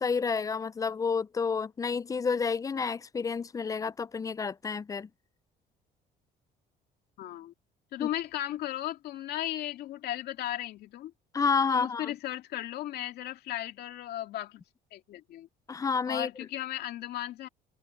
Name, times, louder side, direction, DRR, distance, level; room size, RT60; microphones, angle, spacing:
voice 1, 0.0-5.1 8.0-8.1 11.3-12.1 15.7-16.3, left 5 dB, 20° left, 0.3 m, -30 dB
voice 2, 7.2-7.5 7.9-11.1 11.7-14.6 14.9-15.5 16.1-17.5, left 13 dB, 75° left, 2.7 m, -36 dB
cardioid pair, 110°, 17 cm